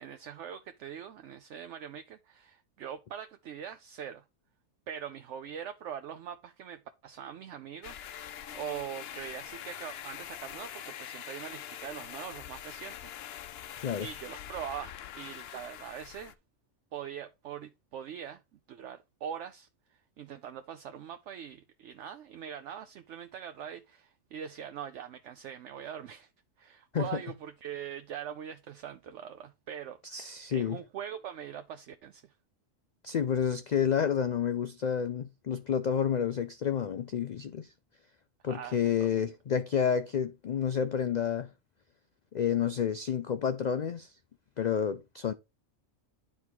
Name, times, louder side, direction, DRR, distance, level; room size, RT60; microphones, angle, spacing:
voice 1, 0.0-4.2 4.9-8.0 8.3-13.1 13.4-13.7 14.0-16.3 16.9-18.4 18.7-19.7 20.2-26.3 26.6-32.3 38.4-39.1, right 9 dB, 70° right, 0.9 m, -42 dB
sound 1, 7.8-16.3, left 10 dB, 60° left, 0.7 m, -44 dB
voice 2, 30.0-30.8 33.0-37.7 38.4-41.5 42.3-44.1 44.6-45.3, left 8 dB, 90° left, 0.3 m, -30 dB
10.0 x 3.6 x 4.6 m
omnidirectional pair, 1.3 m